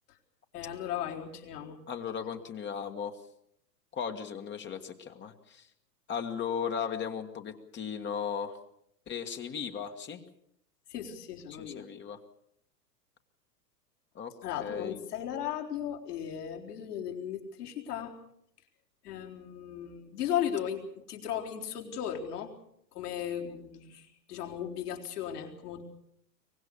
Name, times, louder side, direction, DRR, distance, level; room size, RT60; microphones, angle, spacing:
voice 1, 0.5-1.8 10.9-11.9 14.4-18.1 19.0-22.5 22.9-25.8, left 9 dB, 65° left, 2 dB, 4.2 m, -36 dB
voice 2, 1.9-3.2 3.9-5.7 6.1-8.6 9.1-10.2 11.5-12.2 14.1-14.3 14.6-15.0, left 7 dB, 20° left, 6 dB, 1.7 m, -36 dB
24.0 x 19.5 x 7.1 m, 0.73 s
hypercardioid pair, 110°, 50 cm